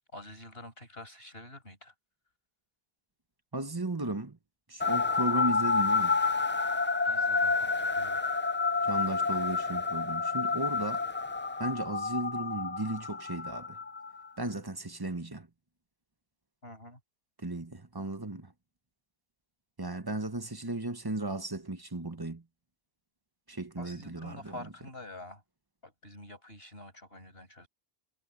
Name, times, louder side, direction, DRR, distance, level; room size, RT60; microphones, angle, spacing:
voice 1, 0.1-1.9 7.0-8.2 16.6-17.0 23.8-25.4 25.8-27.7, left 1 dB, 70° left, 7.8 m, -47 dB
voice 2, 3.5-4.4 4.7-6.2 8.8-11.1 11.6-13.8 14.4-15.5 17.4-18.5 19.8-22.4 23.5-24.5, right 2 dB, 25° right, 1.1 m, -35 dB
sound 1, 4.8-14.3, left 4 dB, 15° left, 0.4 m, -29 dB
omnidirectional pair, 1.0 m